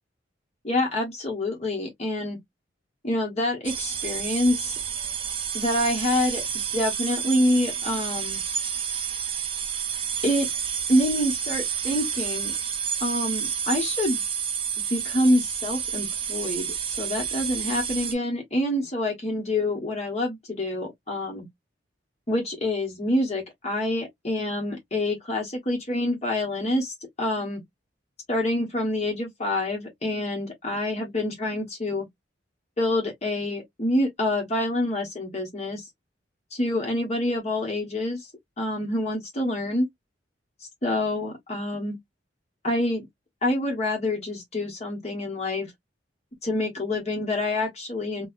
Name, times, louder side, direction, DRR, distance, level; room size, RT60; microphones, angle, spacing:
voice 1, 0.6-2.4 3.0-4.8 5.5-6.4 6.7-8.4 10.2-10.5 10.9-12.5 13.0-14.2 14.8-21.5 22.3-27.6 28.3-32.1 32.8-35.9 36.5-38.3 38.6-39.9 40.8-42.0 42.6-43.1 43.4-45.7 46.4-48.3, left 1 dB, 35° left, 1.1 m, -26 dB
sound 1, 3.6-18.1, right 7 dB, 30° right, 0.6 m, -30 dB
4.1 x 2.3 x 2.4 m
head